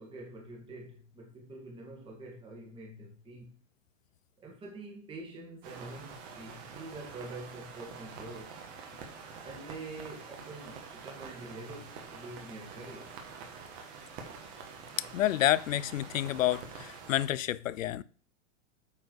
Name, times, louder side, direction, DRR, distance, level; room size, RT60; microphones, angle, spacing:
voice 1, 0.0-3.6 4.4-8.5 9.4-13.2, right 2 dB, 15° right, 1.9 m, -46 dB
sound 1, 5.6-17.3, right 5 dB, 30° right, 1.7 m, -47 dB
voice 2, 15.1-18.0, left 13 dB, 85° left, 0.6 m, -29 dB
8.6 x 4.6 x 4.7 m
hypercardioid pair, 155°, 38 cm